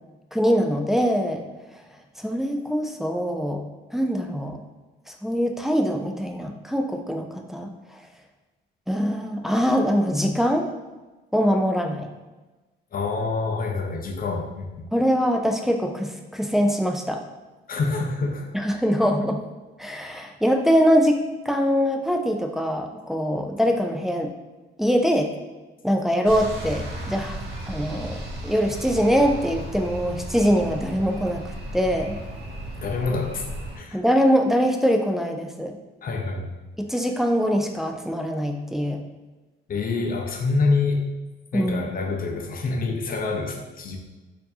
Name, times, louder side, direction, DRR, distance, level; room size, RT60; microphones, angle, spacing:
voice 1, 0.3-1.4 2.2-3.6 3.9-4.6 5.2-7.7 8.9-10.7 11.3-12.1 14.9-17.2 18.5-19.4 19.8-21.2 21.5-24.3 24.8-25.3 25.8-27.4 27.7-32.2 33.9-35.7 36.8-39.0 41.5-41.9, equal, ahead, 3 dB, 0.4 m, -23 dB
voice 2, 12.9-14.7 17.7-18.5 32.8-33.4 33.8-34.0 36.0-36.5 39.7-41.1 41.5-44.0, left 3 dB, 45° left, 2 dB, 0.6 m, -26 dB
sound 1, 26.2-33.8, right 1 dB, 60° right, 1.2 m, -35 dB
4.3 x 2.7 x 2.7 m, 1.2 s
cardioid pair, 90°, 20 cm